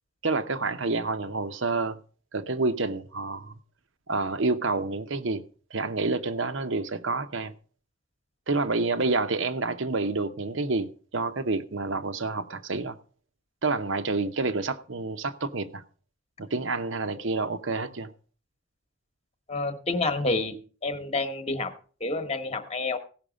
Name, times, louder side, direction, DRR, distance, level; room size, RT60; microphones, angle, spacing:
voice 1, 0.2-2.0 2.3-3.5 4.1-5.4 5.7-7.5 8.5-13.0 13.6-15.8 16.4-18.1, right 3 dB, 60° right, 0.8 m, -28 dB
voice 2, 19.5-20.5 20.8-21.7 22.0-23.0, left 2 dB, 30° left, 1.1 m, -28 dB
16.5 x 6.0 x 5.1 m
head